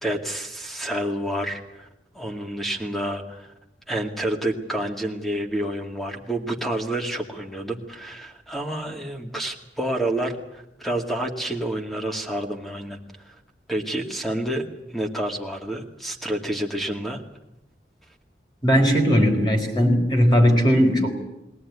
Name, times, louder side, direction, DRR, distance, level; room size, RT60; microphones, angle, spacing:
voice 1, 0.0-1.9 2.1-3.5 3.9-13.0 13.2-13.4 13.7-14.6 14.9-17.2, right 1 dB, ahead, 3 dB, 2.2 m, -29 dB
voice 2, 18.6-21.1, equal, 25° left, 2 dB, 4.6 m, -18 dB
22.0 x 17.5 x 9.7 m, 0.89 s
head